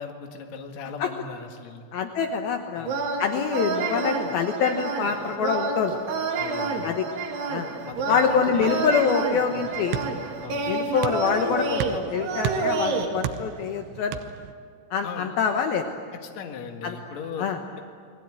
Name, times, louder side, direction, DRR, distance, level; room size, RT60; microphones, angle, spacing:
voice 1, 0.0-1.8 2.7-3.0 6.4-7.0 7.8-8.9 9.5-9.7 10.4-10.7 15.0-15.3 16.1-17.5, left 5 dB, 50° left, 4 dB, 2.5 m, -38 dB
voice 2, 1.9-2.9 3.2-6.0 6.8-7.0 7.5-7.7 8.1-10.0 10.7-14.2 14.9-15.9 16.8-17.0 17.4-17.6, left 6 dB, 70° left, 5 dB, 2.7 m, -25 dB
sound 1, 2.8-13.1, right 4 dB, 70° right, 4.1 m, -29 dB
sound 2, 7.9-14.5, right 10 dB, 90° right, 3.2 m, -36 dB
29.5 x 21.0 x 9.0 m, 2.2 s
omnidirectional pair, 5.0 m